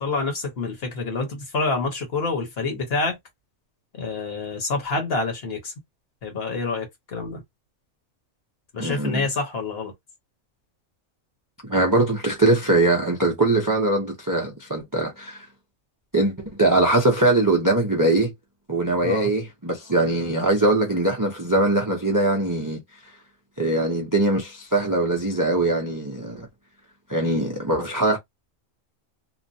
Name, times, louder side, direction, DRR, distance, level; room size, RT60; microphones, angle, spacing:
voice 1, 0.0-3.2 4.0-5.7 6.2-7.4 8.7-9.9 19.0-19.3, left 3 dB, 50° left, 1.3 m, -27 dB
voice 2, 8.8-9.2 11.6-15.5 16.1-18.3 18.7-22.8 23.6-26.5 27.1-28.2, right 2 dB, 25° right, 0.4 m, -22 dB
3.1 x 2.1 x 2.6 m
omnidirectional pair, 1.4 m